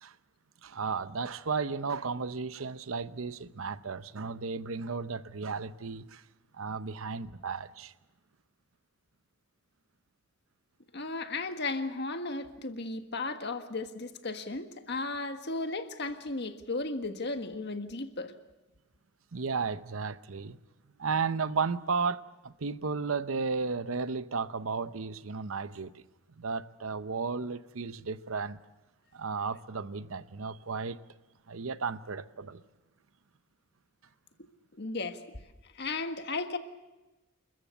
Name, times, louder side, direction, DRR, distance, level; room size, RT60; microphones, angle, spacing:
voice 1, 0.6-6.2 6.5-7.9 19.3-20.6 21.0-26.0 26.4-28.6 29.1-31.0 31.5-32.6, right 5 dB, 80° right, 0.8 m, -34 dB
voice 2, 10.9-18.3 34.8-35.2 35.7-36.6, left 3 dB, 55° left, 1.6 m, -35 dB
28.5 x 14.0 x 8.1 m
head